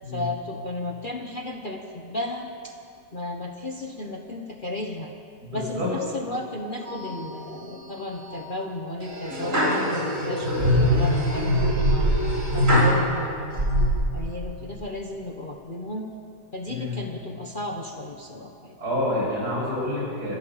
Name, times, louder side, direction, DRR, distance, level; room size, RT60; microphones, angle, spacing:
voice 1, 0.1-2.7 3.1-5.1 5.5-12.1 12.5-13.8 14.1-16.1 16.5-18.8, left 1 dB, 30° left, 2 dB, 1.3 m, -34 dB
voice 2, 5.4-5.9 16.7-17.0 18.8-20.4, left 1 dB, 60° right, -4 dB, 7.6 m, -28 dB
sound 1, 6.9-7.6 8.0-8.4 9.0-13.0 13.5-13.9, equal, 45° right, 4.4 m, -22 dB
26.0 x 15.0 x 7.3 m, 2.7 s
omnidirectional pair, 1.8 m